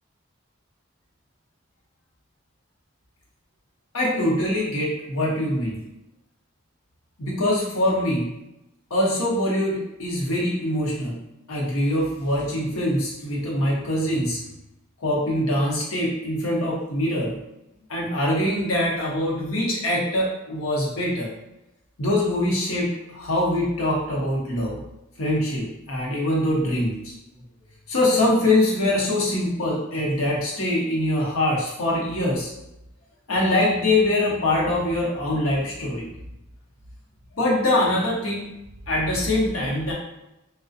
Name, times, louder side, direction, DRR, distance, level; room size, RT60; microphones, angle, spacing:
voice 1, 3.9-5.8 7.2-8.3 8.9-11.2 11.5-14.4 15.0-17.4 17.9-21.3 22.0-24.8 25.2-27.1 27.9-32.5 33.3-36.1 37.3-38.4 38.9-39.9, left 1 dB, 90° left, -4 dB, 0.8 m, -23 dB
2.4 x 2.1 x 2.5 m, 0.90 s
head